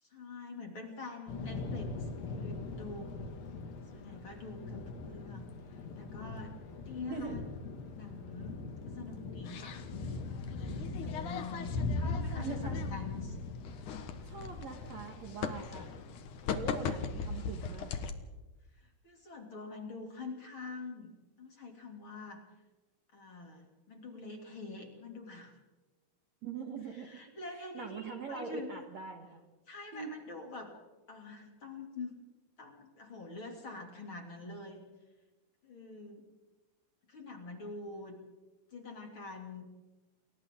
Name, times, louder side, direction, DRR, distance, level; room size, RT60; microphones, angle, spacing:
voice 1, 0.0-3.1 3.9-6.6 6.8-7.4 7.9-8.6 8.9-9.8 10.4-13.4 18.8-21.1 21.4-22.4 23.1-25.5 26.9-28.8 29.7-30.7 31.1-32.2 32.6-34.8 35.6-36.2 37.1-38.2 38.7-39.7, left 3 dB, 35° left, 2 dB, 3.3 m, -46 dB
Thunder / Rain, 1.3-17.4, left 3 dB, 85° left, 4.4 m, -41 dB
sound 1, 9.4-18.1, left 6 dB, 60° left, 2.5 m, -40 dB
voice 2, 12.4-12.8 14.2-15.9 16.5-17.9 26.4-27.1 27.7-29.4 29.9-30.1, right 5 dB, 55° right, 4 dB, 2.2 m, -42 dB
29.5 x 23.0 x 3.8 m, 1.1 s
omnidirectional pair, 4.6 m